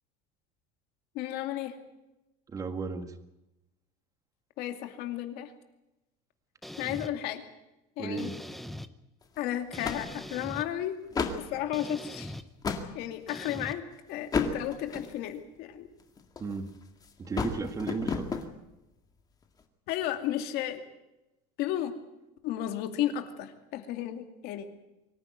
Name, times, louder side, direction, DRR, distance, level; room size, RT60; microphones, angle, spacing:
voice 1, 1.1-1.8 4.6-5.5 6.8-7.5 8.0-8.3 9.4-11.0 11.4-12.4 12.9-15.9 19.9-20.9 21.6-21.9 22.4-24.7, left 11 dB, 55° left, 7 dB, 2.5 m, -33 dB
voice 2, 2.5-3.1 8.0-8.3 16.4-16.7 17.2-18.4, right 4 dB, 15° right, 9 dB, 1.6 m, -34 dB
sound 1, 6.6-7.1 8.2-8.9 9.7-10.7 11.7-12.4 13.3-13.7, left 1 dB, ahead, 0.7 m, -41 dB
sound 2, 9.2-9.4 9.8-10.5 11.0-11.5 12.2-12.9 13.5-13.8 14.3-15.3 16.0-16.7 17.0-18.5, left 5 dB, 20° left, 2.0 m, -32 dB
24.5 x 15.0 x 9.4 m, 0.95 s
cardioid pair, 175°, 20 cm